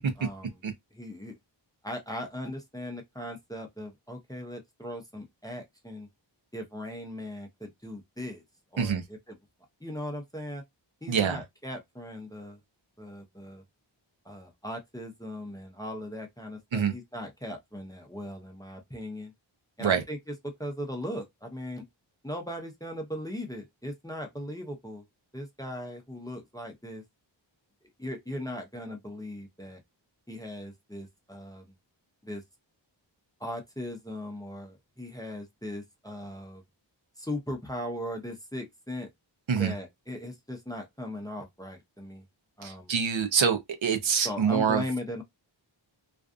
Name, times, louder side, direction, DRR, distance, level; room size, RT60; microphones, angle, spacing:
voice 1, 0.2-0.6 0.9-1.4 1.8-6.1 6.5-8.4 8.7-9.0 9.3-9.4 9.8-10.6 11.0-12.6 13.0-13.6 14.2-19.3 19.8-20.3 20.6-21.9 22.2-25.0 25.3-27.0 28.0-29.8 30.3-31.8 32.2-32.4 33.4-36.6 37.2-39.1 39.5-42.2 42.6-42.9 44.2-45.2, left 1 dB, 10° left, 0.6 m, -38 dB
voice 2, 11.1-11.4 16.7-16.9 19.8-20.0 39.5-39.7 42.6-44.8, right 7 dB, 75° right, 0.7 m, -25 dB
2.5 x 2.3 x 2.4 m
wide cardioid pair, 80°, 47 cm